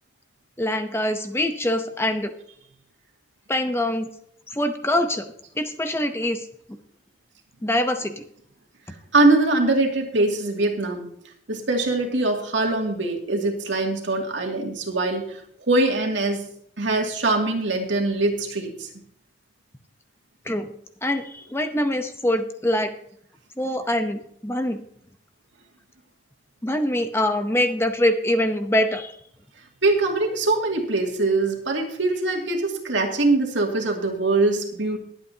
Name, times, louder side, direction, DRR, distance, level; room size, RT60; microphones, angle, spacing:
voice 1, 0.6-2.3 3.5-4.1 4.5-5.3 5.6-6.5 7.6-8.2 20.4-20.7 21.0-22.9 23.6-24.8 26.6-29.1, left 1 dB, 15° left, 7 dB, 0.7 m, -24 dB
voice 2, 9.1-11.1 11.5-15.4 15.7-16.4 16.8-18.9 29.8-35.0, right 2 dB, 80° right, 2 dB, 2.3 m, -22 dB
21.5 x 8.3 x 2.8 m, 0.69 s
head